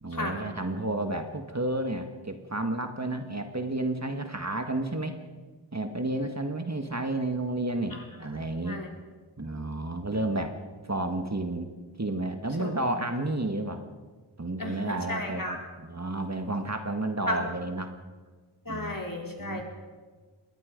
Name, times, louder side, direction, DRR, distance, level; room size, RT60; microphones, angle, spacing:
voice 1, 0.0-5.2 5.7-8.8 9.4-10.6 10.8-11.7 12.0-13.8 14.4-18.0 18.7-19.0 19.4-19.6, right 2 dB, 35° right, 6 dB, 1.8 m, -31 dB
voice 2, 14.6-15.6 17.3-17.4 18.6-19.6, left 1 dB, 45° left, 1 dB, 4.4 m, -34 dB
27.0 x 21.0 x 5.3 m, 1.4 s
wide cardioid pair, 50°, 47 cm